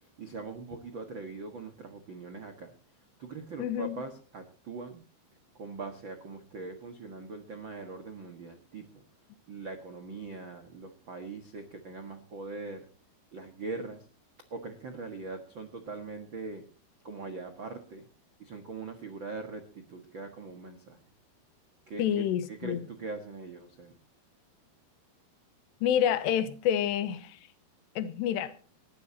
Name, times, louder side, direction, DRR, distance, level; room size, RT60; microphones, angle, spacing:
voice 1, 0.2-2.7 3.2-5.0 5.6-9.0 9.5-12.8 13.3-14.0 14.5-16.6 17.0-18.0 18.4-21.0 21.9-23.9, right 3 dB, 75° right, 1.1 m, -41 dB
voice 2, 3.6-4.0 22.0-22.9 25.8-27.4 28.0-28.5, left 10 dB, 85° left, 3.1 m, -28 dB
19.5 x 14.5 x 2.8 m
omnidirectional pair, 4.9 m